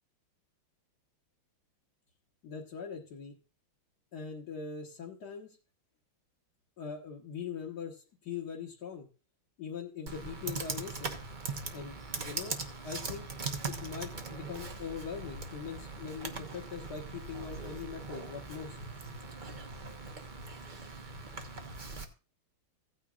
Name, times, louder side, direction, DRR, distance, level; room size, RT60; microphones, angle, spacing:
voice 1, 2.4-3.4 4.1-5.6 6.8-9.1 9.6-11.2 11.7-12.6 12.8-13.3 13.7-19.2, left 6 dB, 55° left, -3 dB, 1.8 m, -42 dB
Computer keyboard, 10.1-22.0, right 4 dB, 40° right, 0.7 m, -41 dB
16.0 x 9.3 x 2.4 m, 0.33 s
omnidirectional pair, 2.3 m